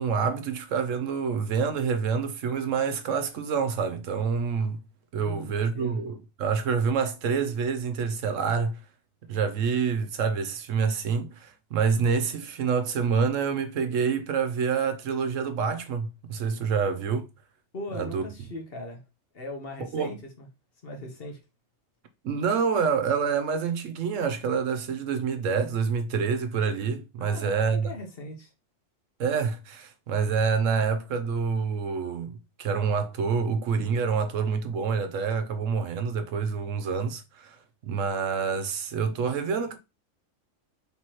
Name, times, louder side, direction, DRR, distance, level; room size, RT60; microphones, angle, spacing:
voice 1, 0.0-4.8 5.1-8.8 9.3-17.3 18.0-18.2 19.9-20.1 22.2-27.9 29.2-37.6 37.9-39.8, right 6 dB, 75° right, 1.0 m, -27 dB
voice 2, 5.1-6.0 17.7-19.0 19.3-20.5 20.8-21.4 27.2-28.5, left 1 dB, 50° left, 1.2 m, -39 dB
4.6 x 3.5 x 2.9 m
omnidirectional pair, 1.4 m